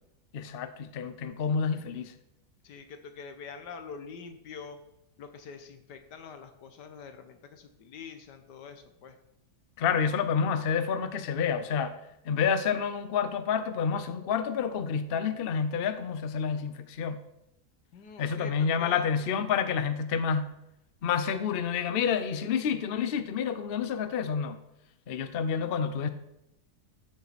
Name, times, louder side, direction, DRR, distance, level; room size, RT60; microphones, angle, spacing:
voice 1, 0.3-2.1 9.8-12.0 12.2-17.2 18.2-20.5 21.0-24.6 25.1-26.1, left 6 dB, 50° left, 11 dB, 0.7 m, -29 dB
voice 2, 2.6-4.8 5.2-9.2 17.9-19.3, left 5 dB, 90° left, 8 dB, 1.7 m, -45 dB
13.5 x 7.3 x 4.2 m, 0.83 s
omnidirectional pair, 1.8 m